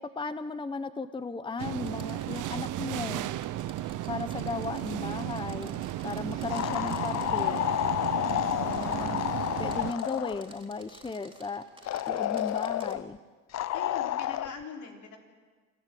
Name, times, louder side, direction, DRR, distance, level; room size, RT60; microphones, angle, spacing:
voice 1, 0.0-3.3 4.1-7.7 8.6-9.3 9.6-11.6 12.1-13.2, left 4 dB, 15° left, 12 dB, 0.8 m, -36 dB
sound 1, 1.6-9.9, right 14 dB, 85° right, 0.8 m, -34 dB
sound 2, 1.8-13.0, right 2 dB, 15° right, 3.7 m, -53 dB
sound 3, 6.5-10.5 11.9-13.0 13.5-14.5, left 13 dB, 60° left, 0.6 m, -30 dB
voice 2, 8.1-8.6 13.7-15.2, left 5 dB, 75° left, 1 dB, 3.8 m, -43 dB
26.5 x 13.5 x 7.7 m, 1.5 s
cardioid pair, 90°, 30 cm